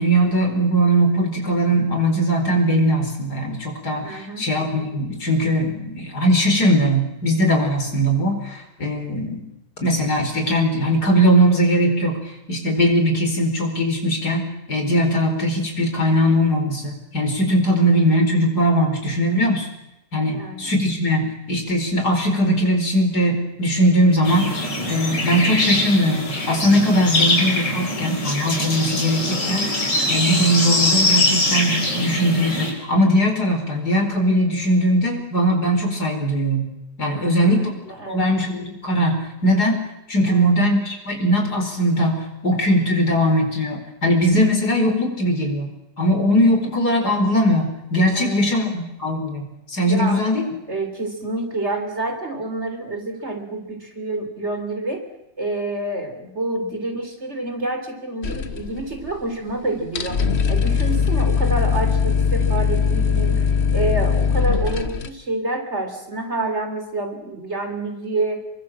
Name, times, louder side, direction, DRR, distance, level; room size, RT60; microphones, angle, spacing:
voice 1, 0.0-9.5 9.8-19.7 20.1-36.7 37.0-39.8 40.1-45.7 46.0-50.4, equal, 65° left, 4 dB, 5.2 m, -20 dB
voice 2, 4.0-4.5 17.6-17.9 20.2-20.7 37.1-37.7 38.0-38.3 40.2-40.5 48.2-48.4 49.9-55.0 55.4-63.4 63.7-68.4, right 2 dB, 40° right, 5 dB, 3.9 m, -28 dB
sound 1, 24.2-32.7, left 1 dB, 80° left, 5.8 m, -22 dB
sound 2, 58.2-59.2 59.5-59.6 59.8-65.1, left 6 dB, 40° left, 1.3 m, -20 dB
28.0 x 23.5 x 7.6 m, 0.89 s
omnidirectional pair, 1.9 m